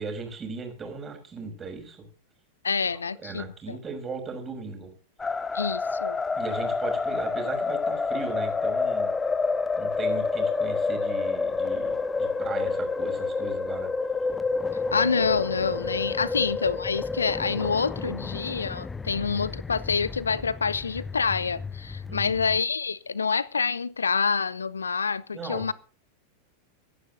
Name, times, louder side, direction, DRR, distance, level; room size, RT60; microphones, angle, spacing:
voice 1, 0.0-2.1 3.2-4.9 6.4-9.1 9.8-13.9 16.2-16.3 22.1-22.4 25.3-25.7, right 4 dB, 20° right, 6.1 m, -37 dB
voice 2, 2.6-3.8 5.5-6.2 14.9-25.7, left 5 dB, 75° left, 0.5 m, -27 dB
sound 1, 5.2-22.6, left 4 dB, 15° left, 0.5 m, -29 dB
25.5 x 11.0 x 2.7 m
figure-of-eight pair, 90°, 0 cm